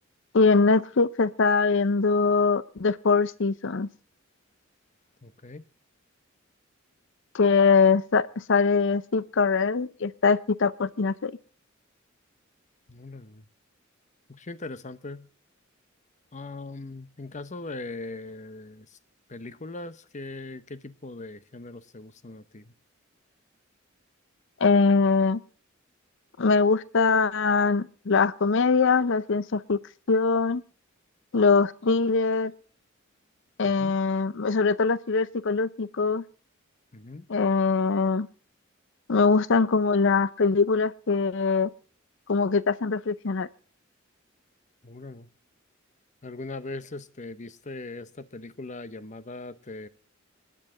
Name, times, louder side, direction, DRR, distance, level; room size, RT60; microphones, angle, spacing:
voice 1, 0.3-3.9 7.3-11.3 24.6-25.4 26.4-29.8 30.1-30.6 31.3-32.5 33.6-36.2 37.3-38.3 39.1-41.7 42.3-43.5, left 4 dB, 65° left, 18 dB, 0.6 m, -22 dB
voice 2, 5.2-5.6 12.9-13.4 14.3-15.3 16.3-19.0 19.3-22.7 33.6-33.9 36.9-37.3 44.8-45.3 46.2-49.9, left 2 dB, 35° left, 14 dB, 0.8 m, -40 dB
27.0 x 10.0 x 3.8 m, 0.42 s
head